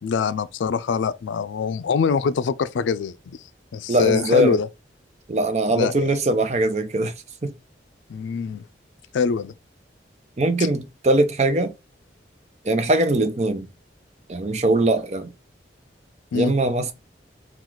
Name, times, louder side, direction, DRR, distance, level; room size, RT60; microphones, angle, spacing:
voice 1, 0.0-3.4 3.7-4.7 5.7-6.2 8.1-8.6 9.1-9.5 16.3-16.5, left 5 dB, 90° left, 0.4 m, -24 dB
voice 2, 3.9-4.6 5.3-7.1 7.4-7.5 10.4-11.7 12.6-13.7 14.3-15.3 16.3-16.9, right 1 dB, 35° right, 0.6 m, -21 dB
3.9 x 2.4 x 4.5 m
head